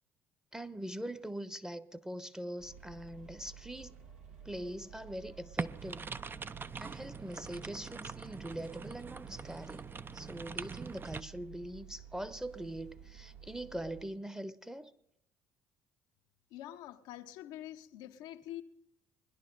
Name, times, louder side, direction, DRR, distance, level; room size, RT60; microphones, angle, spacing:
voice 1, 0.5-3.9 4.4-6.0 6.8-14.9, right 1 dB, 5° right, 0.9 m, -42 dB
sound 1, 2.6-14.1, right 8 dB, 80° right, 2.1 m, -53 dB
sound 2, 5.6-11.2, right 5 dB, 30° right, 0.6 m, -43 dB
voice 2, 16.5-18.6, left 13 dB, 70° left, 0.7 m, -46 dB
20.5 x 11.0 x 3.9 m
hypercardioid pair, 55°, 8 cm